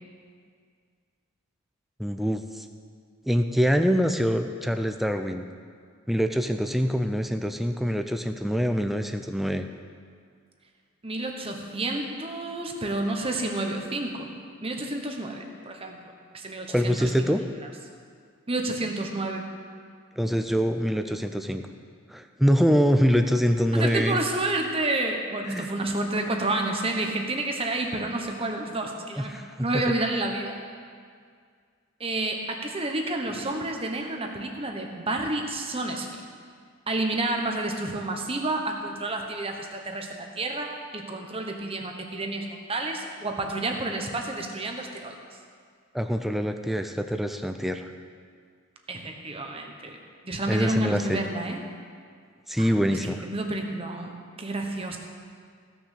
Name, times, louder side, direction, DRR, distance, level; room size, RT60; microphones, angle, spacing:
voice 1, 2.0-2.6 3.3-5.4 6.1-9.7 16.7-17.4 20.2-21.6 22.1-24.2 25.4-25.7 29.3-29.8 45.9-47.9 50.5-51.2 52.5-53.2, equal, ahead, 6 dB, 0.4 m, -24 dB
voice 2, 11.0-14.3 14.6-16.0 16.3-17.3 18.5-19.4 23.7-30.6 32.0-36.2 36.9-45.2 48.9-50.0 50.2-51.6 52.6-52.7 53.2-55.0, right 2 dB, 25° right, 3 dB, 1.1 m, -30 dB
16.0 x 6.3 x 6.6 m, 2.1 s
head